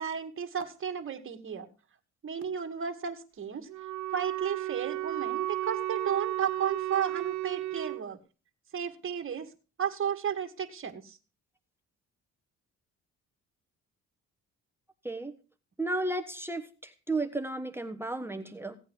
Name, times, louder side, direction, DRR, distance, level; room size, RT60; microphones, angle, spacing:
voice 1, 0.0-1.7 2.2-3.7 4.1-8.2 8.7-9.5 9.8-11.2, right 7 dB, 45° right, 6 dB, 2.2 m, -33 dB
Wind instrument woodwind instrument, 3.7-8.0, right 15 dB, 70° right, 0.5 m, -33 dB
voice 2, 15.8-18.8, right 2 dB, 10° right, 7 dB, 1.3 m, -33 dB
17.0 x 8.6 x 5.4 m, 0.35 s
cardioid pair, 90°, 30 cm